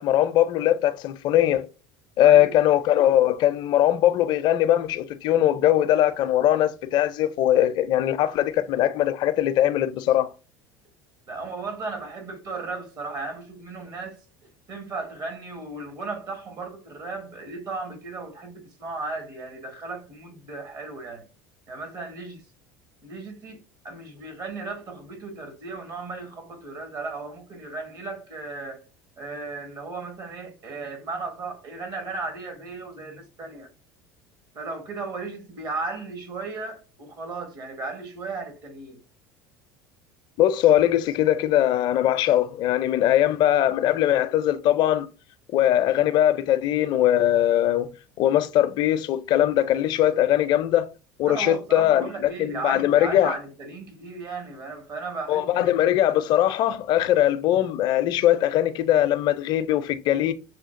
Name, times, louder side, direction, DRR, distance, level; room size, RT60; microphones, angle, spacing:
voice 1, 0.0-1.7 2.2-10.3 40.4-45.1 45.5-47.9 48.2-50.9 51.2-53.3 55.3-60.3, left 12 dB, 55° left, 0.4 m, -21 dB
voice 2, 2.2-2.6 11.3-14.2 14.7-21.3 21.7-22.4 23.0-28.8 29.2-33.7 34.5-39.0 51.2-55.8, right 3 dB, 50° right, 1.2 m, -35 dB
6.3 x 2.3 x 2.5 m
supercardioid pair, 90°, 9 cm